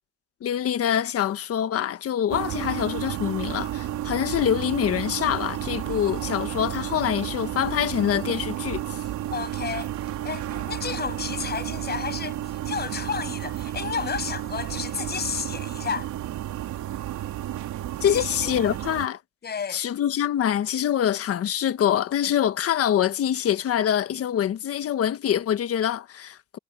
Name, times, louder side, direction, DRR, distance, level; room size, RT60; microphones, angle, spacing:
voice 1, 0.4-9.0 18.0-19.2 19.7-26.6, left 10 dB, 45° left, 1.3 m, -25 dB
sound 1, 2.3-19.1, right 13 dB, 70° right, 3.5 m, -32 dB
voice 2, 9.3-9.9 10.2-16.1 18.0-18.8 19.4-19.8, left 6 dB, 30° left, 7.0 m, -32 dB
cardioid pair, 140°, 31 cm